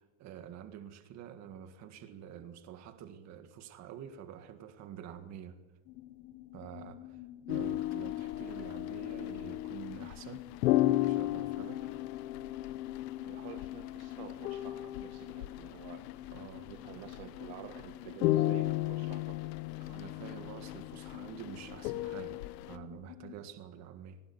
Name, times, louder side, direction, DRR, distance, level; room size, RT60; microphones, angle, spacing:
voice 1, 0.0-5.6 6.5-10.5 11.0-11.8 16.3-17.1 19.8-22.4 22.7-24.2, right 9 dB, 35° right, 1.8 m, -48 dB
sound 1, 5.9-23.4, left 14 dB, 45° left, 1.5 m, -49 dB
sound 2, 7.5-22.8, left 15 dB, 85° left, 1.3 m, -35 dB
voice 2, 13.2-16.1 16.7-19.4 19.8-20.0 21.1-21.3, right 12 dB, 60° right, 1.7 m, -50 dB
20.5 x 19.5 x 9.5 m
cardioid pair, 175°, 48 cm